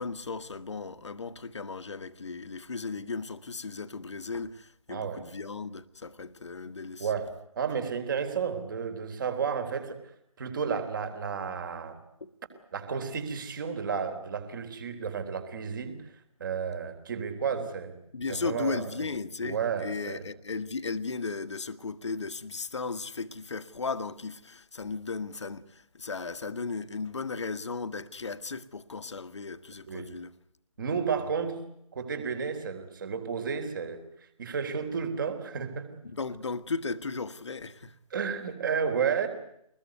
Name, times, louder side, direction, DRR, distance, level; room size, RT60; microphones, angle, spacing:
voice 1, 0.0-7.1 12.2-12.6 17.6-17.7 18.1-30.3 36.1-37.9, left 4 dB, 55° left, 1.6 m, -36 dB
voice 2, 4.9-5.2 7.0-7.3 7.6-10.1 10.4-12.0 12.7-16.1 16.4-17.9 18.3-19.1 19.4-20.2 29.9-30.2 30.8-31.6 31.9-34.0 34.4-36.0 38.1-39.3, right 6 dB, 35° right, 3.8 m, -32 dB
25.0 x 21.0 x 9.5 m
figure-of-eight pair, 150°, 18 cm